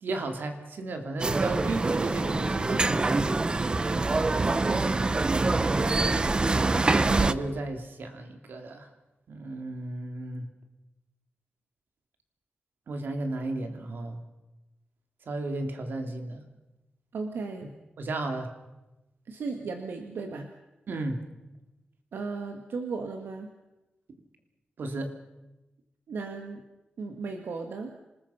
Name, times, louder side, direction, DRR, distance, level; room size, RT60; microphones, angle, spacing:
voice 1, 0.0-3.3 5.5-5.9 6.8-8.9 9.3-10.5 12.9-14.2 15.3-16.4 18.0-18.5 20.9-21.2 24.8-25.1, right 2 dB, 70° right, 5 dB, 2.8 m, -34 dB
sound 1, 1.2-7.3, right 3 dB, 25° right, 0.7 m, -25 dB
voice 2, 3.9-5.1 17.1-17.7 19.3-20.5 22.1-23.5 26.1-26.6 27.0-27.9, right 4 dB, 85° right, 5 dB, 1.7 m, -36 dB
26.5 x 20.0 x 5.7 m, 1.0 s
wide cardioid pair, 130°, 4 cm